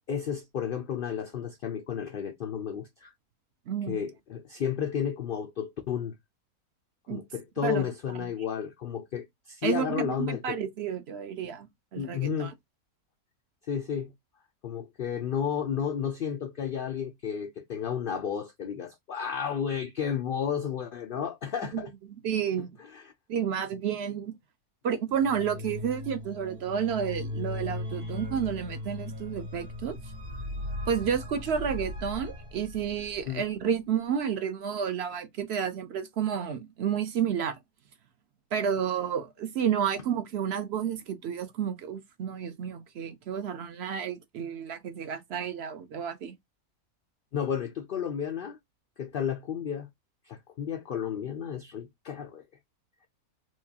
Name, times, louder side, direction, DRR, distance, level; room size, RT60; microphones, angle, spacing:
voice 1, 0.1-3.1 3.9-6.1 7.1-10.6 12.0-12.5 13.7-14.1 14.6-21.9 22.6-22.7 22.9-23.1 33.3-33.4 47.3-48.6 49.0-49.9 50.3-52.4, left 8 dB, 85° left, 0.4 m, -32 dB
voice 2, 3.7-4.0 7.1-7.2 7.6-7.8 9.6-12.5 21.7-21.8 22.2-22.7 23.3-24.3 24.8-30.0 30.9-37.6 38.5-46.3, right 8 dB, 60° right, 0.7 m, -31 dB
sound 1, 25.1-33.4, left 1 dB, 90° right, 2.0 m, -38 dB
4.5 x 2.3 x 2.7 m
omnidirectional pair, 1.5 m